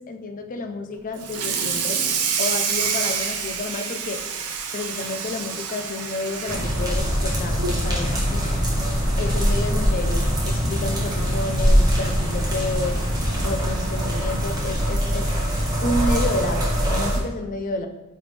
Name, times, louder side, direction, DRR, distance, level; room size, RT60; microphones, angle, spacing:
voice 1, 0.0-2.0 2.4-4.2 4.7-8.7 9.2-15.3 15.8-17.9, left 2 dB, 40° left, 6 dB, 0.5 m, -30 dB
Water tap faucet / Sink (filling or washing), 1.2-7.8 8.2-8.5 8.8-8.9 9.3-9.4 10.5-10.6 11.1-11.3, right 6 dB, 85° right, 0.7 m, -27 dB
sound 1, 6.5-17.2, equal, 20° right, 1.2 m, -22 dB
8.9 x 3.3 x 3.3 m, 0.98 s
head